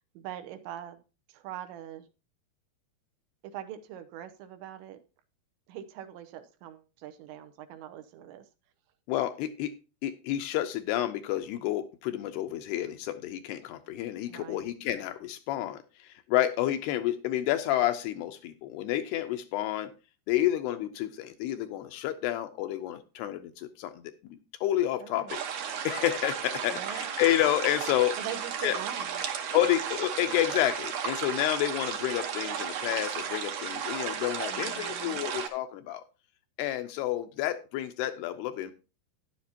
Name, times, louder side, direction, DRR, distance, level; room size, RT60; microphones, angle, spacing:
voice 1, 0.1-1.0 1.3-2.0 3.4-5.0 5.7-8.5 14.3-14.7 25.0-25.3 26.7-27.0 28.2-29.2 34.5-35.3, right 10 dB, 90° right, 8 dB, 3.2 m, -42 dB
voice 2, 9.1-9.7 10.0-19.9 20.3-28.2 28.6-28.8 29.5-36.0 36.6-38.7, left 13 dB, 80° left, 8 dB, 2.5 m, -30 dB
sound 1, 25.3-35.5, right 8 dB, 70° right, 2.0 m, -34 dB
11.5 x 10.5 x 2.8 m, 0.31 s
omnidirectional pair, 5.0 m